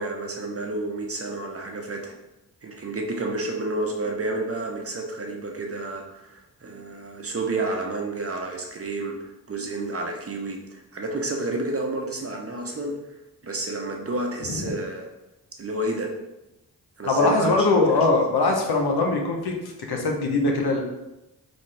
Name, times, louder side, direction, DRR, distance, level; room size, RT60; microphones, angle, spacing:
voice 1, 0.0-2.2 2.6-13.0 13.4-15.1 15.6-16.1 17.0-17.7 17.9-18.0, right 2 dB, 35° right, 1 dB, 0.9 m, -30 dB
voice 2, 17.0-20.8, left 3 dB, 65° left, 1 dB, 1.0 m, -22 dB
4.0 x 3.5 x 3.3 m, 0.94 s
supercardioid pair, 45°, 41 cm